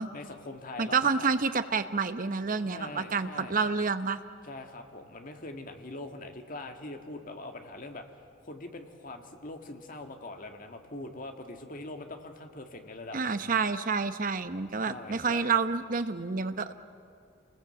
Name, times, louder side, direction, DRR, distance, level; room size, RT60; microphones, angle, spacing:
voice 1, 0.1-1.3 2.6-3.6 4.4-8.0 8.4-13.4 14.8-15.5, left 2 dB, 45° left, 5 dB, 1.9 m, -43 dB
voice 2, 0.8-4.2 13.1-16.7, right 5 dB, 45° right, 10 dB, 0.9 m, -29 dB
28.0 x 20.0 x 8.0 m, 2.4 s
head